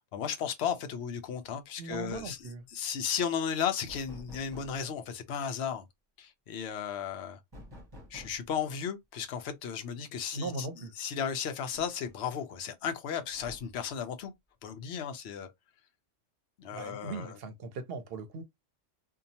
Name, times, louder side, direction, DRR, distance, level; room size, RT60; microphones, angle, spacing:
voice 1, 0.0-2.4 2.7-5.8 6.2-7.4 8.1-10.7 11.0-14.3 14.6-15.5 16.6-17.3, left 7 dB, 65° left, 0.9 m, -34 dB
sound 1, 1.4-1.6 1.9-2.5 3.9-4.9 7.5-8.6 10.1-10.2 10.6-10.7 11.7-12.4 13.3-13.9, left 1 dB, 20° right, 0.9 m, -51 dB
voice 2, 1.8-2.6 10.3-10.9 16.7-18.4, right 3 dB, 60° right, 0.7 m, -39 dB
2.7 x 2.2 x 2.7 m
omnidirectional pair, 1.3 m